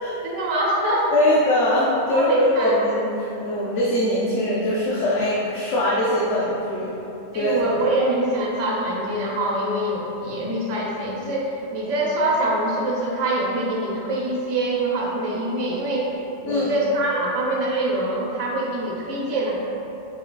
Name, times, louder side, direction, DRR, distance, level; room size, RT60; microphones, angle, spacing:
voice 1, 0.2-1.1 2.1-2.7 7.3-19.5, right 1 dB, 70° right, -4 dB, 1.1 m, -24 dB
voice 2, 1.1-6.9 7.3-7.8 16.4-16.7, left 1 dB, 70° left, -7 dB, 1.0 m, -22 dB
4.7 x 4.6 x 2.2 m, 3.0 s
omnidirectional pair, 1.3 m